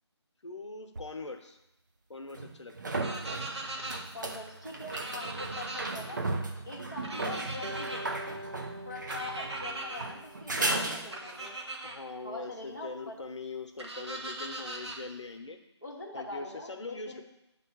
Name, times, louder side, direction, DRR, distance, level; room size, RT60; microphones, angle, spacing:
voice 1, 0.4-1.6 2.1-3.0 11.8-15.6 16.1-17.2, left 3 dB, 80° left, 5 dB, 1.0 m, -42 dB
sound 1, 1.0-1.1 2.3-11.5 14.9-15.0, right 2 dB, 40° right, 0.6 m, -36 dB
sound 2, 2.9-4.0 4.9-5.9 7.0-8.0 9.1-10.0 11.1-12.0 13.8-15.0, right 2 dB, 65° right, 1.3 m, -39 dB
voice 2, 3.1-3.4 4.1-6.2 6.6-8.4 8.8-11.6 12.2-13.2 15.8-17.2, left 2 dB, 5° right, -11 dB, 0.7 m, -43 dB
Acoustic guitar, 7.6-11.0, right 1 dB, 90° right, 1.7 m, -44 dB
9.5 x 3.2 x 4.7 m, 0.90 s
figure-of-eight pair, 170°, 15 cm